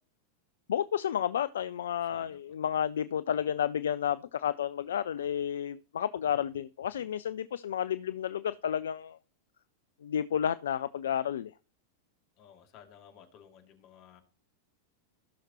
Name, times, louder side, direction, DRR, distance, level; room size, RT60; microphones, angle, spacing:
voice 1, 0.7-9.2 10.0-11.5, left 9 dB, 65° left, 0.4 m, -31 dB
voice 2, 2.1-2.6 12.4-14.2, left 9 dB, 40° left, 2.5 m, -55 dB
16.5 x 6.5 x 3.0 m
figure-of-eight pair, 90°, 0 cm